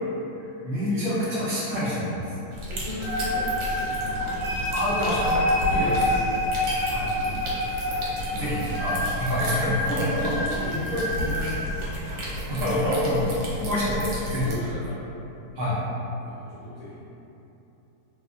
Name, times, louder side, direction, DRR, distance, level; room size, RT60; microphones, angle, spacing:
voice 1, 0.6-2.3 4.7-5.3 5.7-5.9 6.9-7.1 8.3-10.3 12.5-13.2 13.5-14.5 15.5-15.8, left 1 dB, 55° right, -10 dB, 0.7 m, -27 dB
sound 1, 2.5-14.5, equal, 75° right, 1.3 m, -33 dB
voice 2, 2.7-4.4 5.7-6.2 6.8-7.7 8.3-9.1 10.3-10.9 11.2-12.2 13.5-13.7 14.4-15.0 16.2-17.1, left 1 dB, 65° left, -11 dB, 1.1 m, -37 dB
sound 2, 3.0-11.7, left 1 dB, 25° left, 0.7 m, -28 dB
2.9 x 2.3 x 3.5 m, 3.0 s
omnidirectional pair, 1.9 m